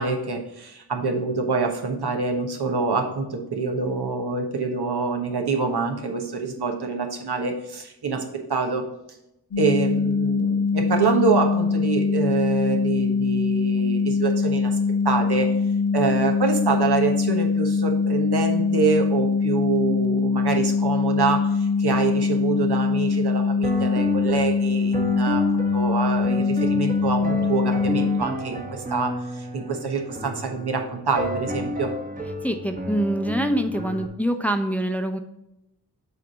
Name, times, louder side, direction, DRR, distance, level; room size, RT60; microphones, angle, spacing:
voice 1, 0.0-8.8 9.6-14.8 15.0-15.5 15.9-31.9, right 4 dB, 75° right, 3 dB, 1.2 m, -26 dB
sound 1, 9.5-28.2, left 5 dB, 70° left, 1.4 m, -23 dB
sound 2, 23.6-34.1, equal, 20° right, 1.1 m, -31 dB
voice 2, 32.4-35.2, right 1 dB, 5° left, 6 dB, 0.7 m, -25 dB
6.8 x 3.4 x 5.2 m, 0.88 s
cardioid pair, 55°, 39 cm